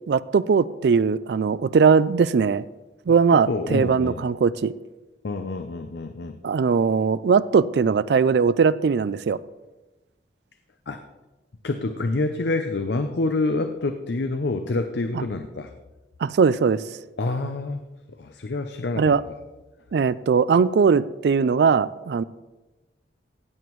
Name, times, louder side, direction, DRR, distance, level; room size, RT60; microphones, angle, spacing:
voice 1, 0.1-2.6 3.1-4.7 6.4-9.4 16.2-16.8 19.0-19.2 19.9-22.2, right 5 dB, 65° right, 17 dB, 0.3 m, -20 dB
voice 2, 3.5-4.2 5.2-6.4 10.9-11.0 11.6-15.7 17.2-17.8 18.2-19.1, left 2 dB, 65° left, 7 dB, 0.6 m, -27 dB
16.0 x 7.9 x 3.1 m, 1.1 s
head